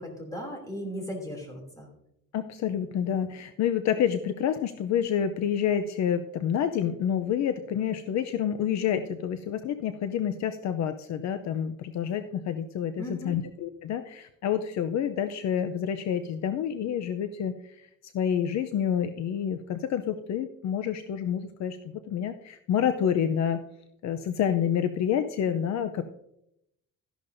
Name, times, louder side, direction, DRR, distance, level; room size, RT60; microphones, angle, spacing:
voice 1, 0.0-1.9 13.0-13.4, equal, 10° left, 1 dB, 2.8 m, -37 dB
voice 2, 2.3-23.6 24.0-26.0, left 9 dB, 60° left, 8 dB, 0.6 m, -28 dB
13.5 x 11.0 x 2.6 m, 0.81 s
cardioid pair, 155°, 32 cm